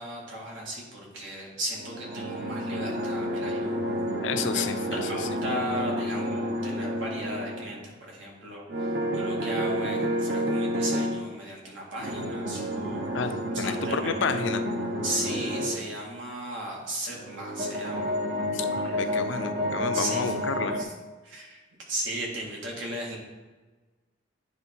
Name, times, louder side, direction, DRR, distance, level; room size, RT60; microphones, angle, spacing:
voice 1, 0.0-4.0 4.5-13.1 13.5-14.2 15.0-18.2 18.8-19.1 19.9-20.4 20.7-20.9 21.2-21.6 21.9-23.2, right 1 dB, 80° right, -2 dB, 1.9 m, -36 dB
sound 1, 1.7-7.9 8.7-11.2 12.0-15.8 17.1-20.8, equal, 55° right, 0.8 m, -30 dB
voice 2, 4.2-4.8 13.1-13.3 13.6-14.6 18.5-20.8, left 5 dB, 70° left, 9 dB, 0.5 m, -30 dB
9.6 x 3.5 x 4.4 m, 1.3 s
head